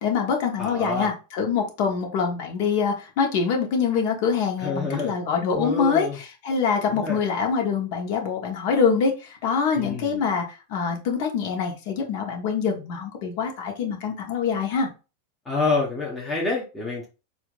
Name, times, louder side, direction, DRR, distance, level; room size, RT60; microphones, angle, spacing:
voice 1, 0.0-14.9, left 6 dB, 60° left, 1 dB, 1.1 m, -25 dB
voice 2, 0.6-1.1 4.6-5.1 5.5-6.1 6.8-7.2 9.8-10.2 15.5-17.1, left 3 dB, 15° left, -4 dB, 1.1 m, -27 dB
4.3 x 2.6 x 2.5 m, 0.31 s
hypercardioid pair, 110°, 0 cm